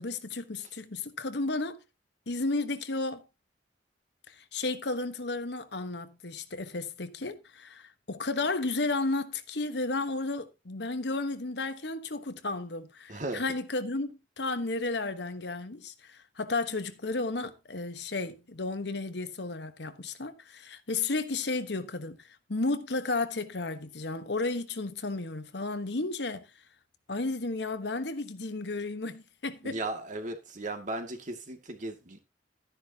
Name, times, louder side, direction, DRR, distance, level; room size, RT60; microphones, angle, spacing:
voice 1, 0.0-1.8 2.3-3.2 4.3-26.4 27.1-29.8, left 3 dB, 65° left, 1.2 m, -33 dB
voice 2, 13.1-13.4 29.6-32.2, right 2 dB, 45° right, 2.1 m, -36 dB
13.0 x 10.0 x 2.9 m
head